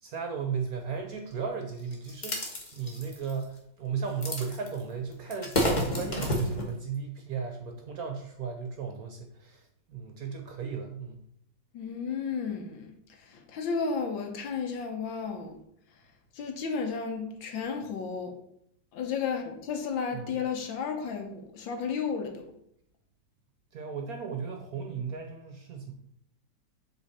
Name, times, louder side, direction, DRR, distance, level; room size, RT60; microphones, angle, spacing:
voice 1, 0.0-11.2 20.1-20.4 23.7-25.9, right 6 dB, 60° right, 1.0 m, -36 dB
sound 1, 1.9-3.4 4.2-4.8 5.1-6.7, equal, 30° left, 1.0 m, -29 dB
voice 2, 11.7-15.6 16.3-18.3 18.9-22.5, left 5 dB, 75° left, 1.6 m, -33 dB
7.5 x 3.6 x 4.2 m
omnidirectional pair, 2.2 m